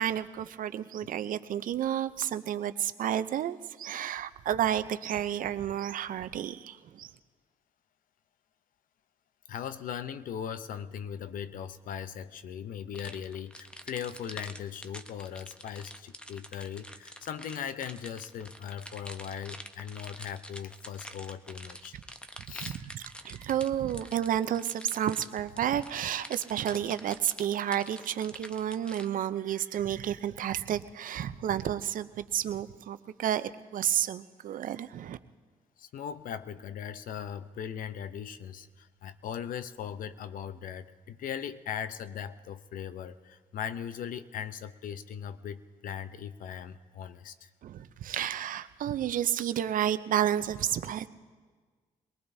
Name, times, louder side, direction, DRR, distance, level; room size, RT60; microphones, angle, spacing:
voice 1, 0.0-7.1 22.6-35.2 47.6-51.1, right 10 dB, 65° right, 13 dB, 0.6 m, -31 dB
voice 2, 9.5-22.0 22.5-22.8 35.8-47.5, left 8 dB, 65° left, 13 dB, 0.7 m, -39 dB
sound 1, 12.9-29.1, equal, 5° left, 0.9 m, -46 dB
23.0 x 19.0 x 2.7 m, 1.5 s
supercardioid pair, 65°, 15 cm